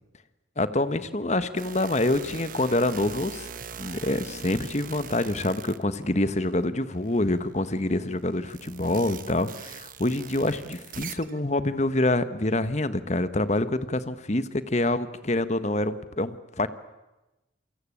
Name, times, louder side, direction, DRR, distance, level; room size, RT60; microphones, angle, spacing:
voice 1, 0.6-3.5 3.8-16.7, left 1 dB, 35° left, 12 dB, 1.4 m, -26 dB
sound 1, 1.6-6.5 6.9-11.4, right 6 dB, 45° right, 1.3 m, -42 dB
28.5 x 23.5 x 8.7 m, 1.0 s
head